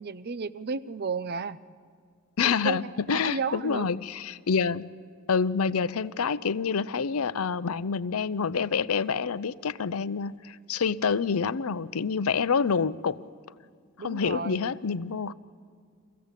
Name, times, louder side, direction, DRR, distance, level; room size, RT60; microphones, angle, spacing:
voice 1, 0.0-1.6 2.4-3.9 14.0-14.8, right 4 dB, 45° right, 16 dB, 0.5 m, -33 dB
voice 2, 2.4-4.9 5.3-13.2 14.0-15.3, left 6 dB, 80° left, 16 dB, 0.6 m, -27 dB
24.5 x 16.0 x 8.2 m, 2.1 s
head